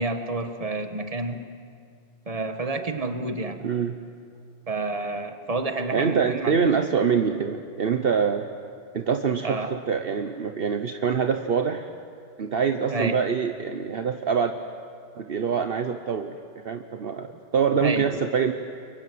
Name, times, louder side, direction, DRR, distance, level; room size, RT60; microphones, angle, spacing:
voice 1, 0.0-1.4 2.3-3.6 4.7-6.5 9.4-9.7 12.9-13.2 17.8-18.1, right 2 dB, 35° right, 7 dB, 1.5 m, -29 dB
voice 2, 3.6-4.0 5.9-8.5 8.9-11.9 12.4-14.5 15.2-16.3 16.6-18.5, right 6 dB, 60° right, 7 dB, 1.1 m, -25 dB
30.0 x 23.0 x 7.8 m, 2.2 s
omnidirectional pair, 1.1 m